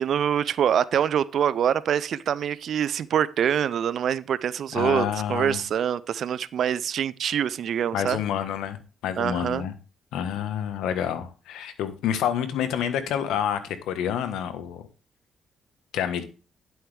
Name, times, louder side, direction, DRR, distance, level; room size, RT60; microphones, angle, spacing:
voice 1, 0.0-8.2 9.2-9.6, right 9 dB, 65° right, 0.5 m, -25 dB
voice 2, 4.7-5.6 7.9-8.8 9.0-9.7 10.1-14.9 15.9-16.2, left 9 dB, 90° left, 1.2 m, -28 dB
11.0 x 7.8 x 3.4 m
cardioid pair, 90°, 0 cm